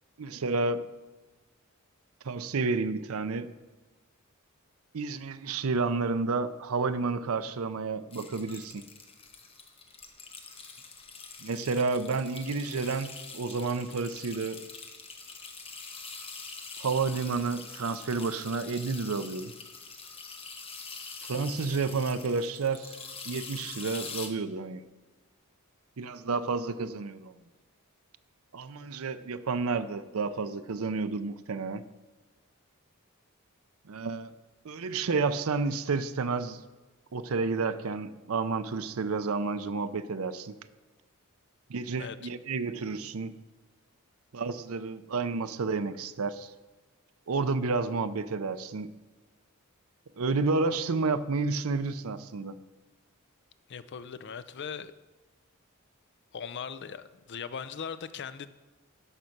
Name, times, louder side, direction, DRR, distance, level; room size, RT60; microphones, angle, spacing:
voice 1, 0.2-0.8 2.2-3.5 4.9-8.8 11.4-14.6 16.8-19.5 21.2-23.0 23.3-24.8 26.0-27.3 28.5-31.8 33.9-34.3 34.6-36.6 37.1-40.5 41.7-43.3 44.3-46.5 47.3-48.9 50.2-52.6, right 4 dB, 75° right, 0.5 m, -30 dB
sound 1, 8.1-24.3, left 4 dB, 25° left, 1.0 m, -44 dB
voice 2, 53.7-54.9 56.3-58.5, left 6 dB, 50° left, 0.5 m, -39 dB
12.5 x 5.3 x 5.9 m
head